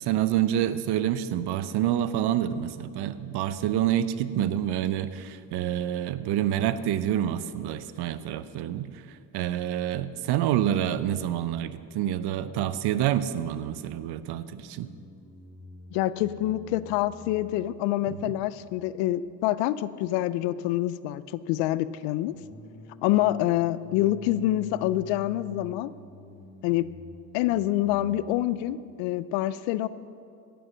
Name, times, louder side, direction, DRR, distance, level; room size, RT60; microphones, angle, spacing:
voice 1, 0.0-14.9 18.1-18.4, right 11 dB, 65° right, 14 dB, 0.7 m, -27 dB
sound 1, 14.3-28.8, left 1 dB, 20° left, 3.2 m, -50 dB
voice 2, 15.9-22.3 23.0-25.9 26.6-26.9 27.3-29.9, left 14 dB, 80° left, 17 dB, 0.6 m, -26 dB
16.5 x 7.0 x 6.2 m, 2.4 s
supercardioid pair, 80°, 43 cm